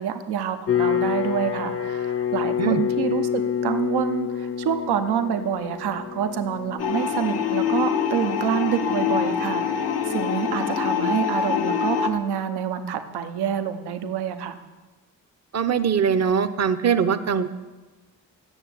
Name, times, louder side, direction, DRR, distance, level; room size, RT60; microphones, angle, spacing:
voice 1, 0.0-9.8 10.1-14.6, right 8 dB, 75° right, 8 dB, 0.9 m, -27 dB
sound 1, 0.7-11.7, left 8 dB, 35° left, 0.6 m, -29 dB
sound 2, 6.8-12.1, left 7 dB, 75° left, 0.9 m, -25 dB
voice 2, 15.5-17.5, right 7 dB, 40° right, 12 dB, 0.8 m, -22 dB
9.1 x 7.0 x 7.5 m, 1.2 s
hypercardioid pair, 40°, 39 cm